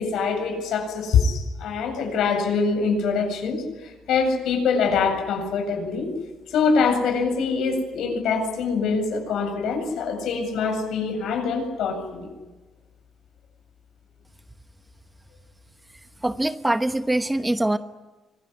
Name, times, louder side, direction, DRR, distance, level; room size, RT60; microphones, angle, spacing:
voice 1, 0.0-6.1 6.5-12.3, left 5 dB, 75° left, 5 dB, 7.8 m, -24 dB
voice 2, 16.2-17.8, right 1 dB, 10° right, 10 dB, 1.0 m, -23 dB
25.5 x 21.5 x 9.7 m, 1.2 s
cardioid pair, 125°, 0 cm